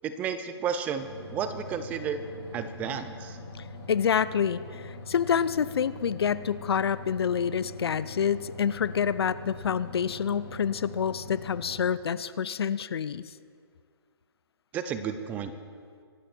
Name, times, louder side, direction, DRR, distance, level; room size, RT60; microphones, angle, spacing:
voice 1, 0.0-2.2 2.5-3.4 14.7-15.5, right 7 dB, 10° right, 10 dB, 0.5 m, -32 dB
sound 1, 1.0-11.8, left 2 dB, 25° left, 3.5 m, -43 dB
voice 2, 3.9-13.2, left 7 dB, 65° left, 17 dB, 0.6 m, -27 dB
25.0 x 12.0 x 4.5 m, 2.1 s
hypercardioid pair, 160°, 14 cm